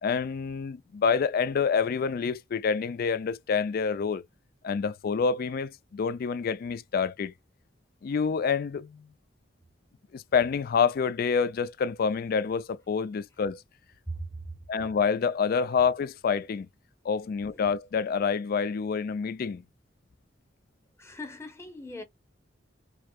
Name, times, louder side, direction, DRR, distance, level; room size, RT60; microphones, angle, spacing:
voice 1, 0.0-4.2 4.6-7.3 8.0-9.1 10.1-13.6 14.7-16.7 17.0-19.6, left 6 dB, 55° left, 0.4 m, -27 dB
voice 2, 14.1-14.4 17.5-17.6 21.0-22.0, equal, 15° left, 0.9 m, -39 dB
4.6 x 2.0 x 2.3 m
head